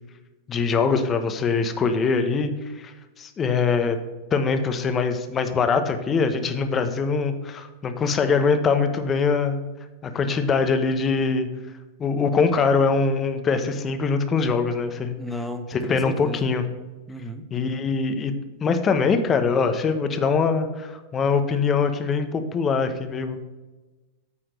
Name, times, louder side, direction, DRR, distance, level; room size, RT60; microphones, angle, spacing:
voice 1, 0.5-2.9 3.2-4.0 4.3-9.6 10.0-11.5 12.0-15.1 15.7-16.6 17.5-18.3 18.6-23.4, left 5 dB, 25° left, 8 dB, 1.1 m, -23 dB
voice 2, 15.2-16.5 17.1-17.4, left 1 dB, ahead, 7 dB, 1.0 m, -34 dB
9.1 x 4.3 x 6.5 m, 1.2 s
hypercardioid pair, 110°, 0 cm